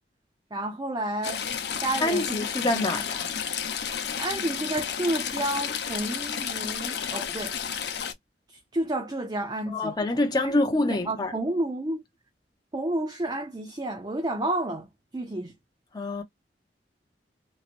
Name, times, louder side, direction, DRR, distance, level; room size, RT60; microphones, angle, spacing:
voice 1, 0.5-1.5 1.8-2.9 4.2-7.6 8.5-9.9 10.4-10.6 10.9-12.0 12.7-15.5, right 1 dB, 25° right, 0.5 m, -31 dB
Stream / Trickle dribble, 1.2-8.1, left 7 dB, 70° left, 0.6 m, -31 dB
voice 2, 2.0-3.3 9.7-11.3 15.9-16.2, left 2 dB, 25° left, 0.6 m, -26 dB
3.0 x 2.8 x 2.5 m
head